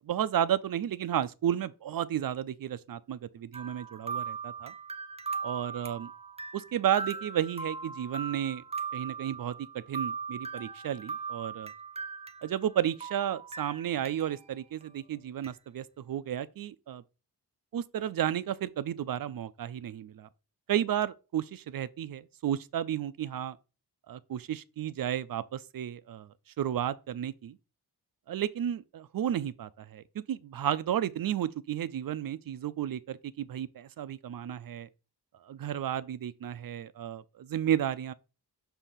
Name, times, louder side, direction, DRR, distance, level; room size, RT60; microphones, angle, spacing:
voice 1, 0.0-4.7 5.4-6.1 6.5-8.6 8.9-11.7 12.4-17.0 17.7-20.3 20.7-23.6 24.1-27.6 28.3-34.9 35.4-38.1, right 10 dB, 60° right, 0.5 m, -32 dB
sound 1, 3.5-12.8 13.0-14.5 14.8-14.9 15.4-15.5, right 5 dB, 15° right, 0.6 m, -39 dB
6.8 x 2.7 x 5.6 m
wide cardioid pair, 125°, 40 cm